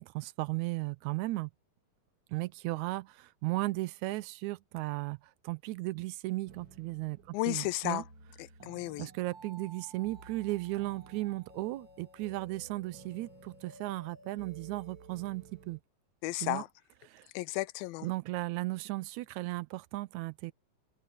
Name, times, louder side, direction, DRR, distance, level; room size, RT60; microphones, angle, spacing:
voice 1, 0.0-1.5 2.3-5.2 5.4-8.0 9.0-15.8 16.4-16.6 17.1-17.3 18.0-20.5, right 19 dB, 80° right, 1.7 m, -36 dB
sound 1, 6.5-15.8, right 3 dB, 30° right, 4.2 m, -54 dB
voice 2, 7.3-8.0 8.4-9.1 16.2-16.7 17.3-18.1, left 19 dB, 85° left, 2.5 m, -33 dB
omnidirectional pair, 4.1 m